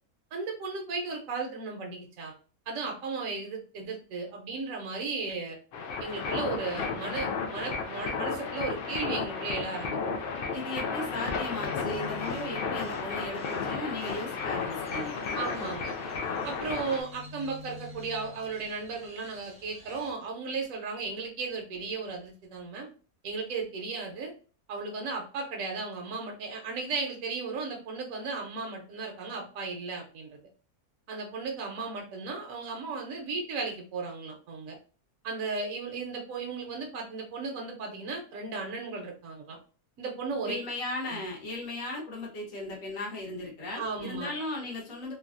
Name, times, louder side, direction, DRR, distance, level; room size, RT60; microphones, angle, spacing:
voice 1, 0.3-2.3 2.7-5.6 6.0-10.0 15.3-16.0 16.4-22.9 23.2-24.3 24.7-30.4 31.1-34.8 35.2-39.6 40.0-40.6 41.1-41.2 43.8-44.3, right 4 dB, 70° right, 1 dB, 1.0 m, -35 dB
sound 1, 5.7-17.0, left 5 dB, 90° left, 0.5 m, -33 dB
voice 2, 10.5-15.1 40.4-45.1, left 2 dB, 65° left, -2 dB, 1.4 m, -36 dB
Crow, 11.1-20.2, left 2 dB, 5° right, 0.6 m, -49 dB
3.2 x 2.2 x 2.5 m, 0.39 s
omnidirectional pair, 1.6 m